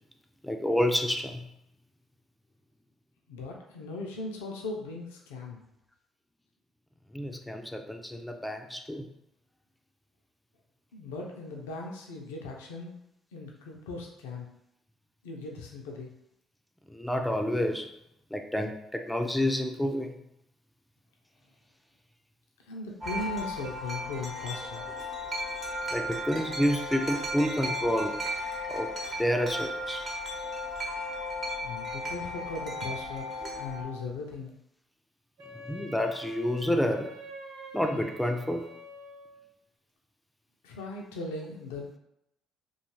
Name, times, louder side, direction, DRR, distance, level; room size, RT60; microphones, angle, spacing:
voice 1, 0.4-1.4 7.1-9.1 16.9-17.9 18.3-20.1 25.9-28.2 28.7-28.9 29.2-30.0 35.7-37.1 37.7-38.7, equal, 5° left, 4 dB, 0.3 m, -29 dB
voice 2, 3.3-5.6 10.9-12.9 13.3-14.4 15.2-16.1 22.7-24.9 31.6-33.2 33.5-34.5 40.6-42.0, left 2 dB, 80° left, 0 dB, 0.4 m, -38 dB
Wind chime, 23.0-33.8, left 1 dB, 40° right, 0.8 m, -35 dB
Wind instrument woodwind instrument, 35.4-39.5, equal, 80° right, 0.5 m, -46 dB
2.5 x 2.3 x 2.9 m, 0.82 s
hypercardioid pair, 55°, 0 cm